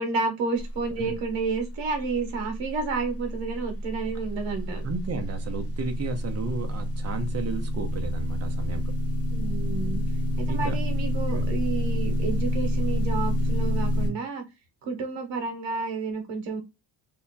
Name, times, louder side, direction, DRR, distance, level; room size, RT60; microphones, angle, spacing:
voice 1, 0.0-4.9 9.3-10.0 10.4-14.4 14.8-16.6, right 4 dB, 75° right, 1.1 m, -30 dB
sound 1, 3.2-14.1, equal, 30° left, 0.9 m, -27 dB
voice 2, 4.8-8.9 10.5-10.8 11.3-11.4, right 3 dB, 35° right, 0.7 m, -33 dB
2.8 x 2.3 x 3.9 m
cardioid pair, 165°, 45 cm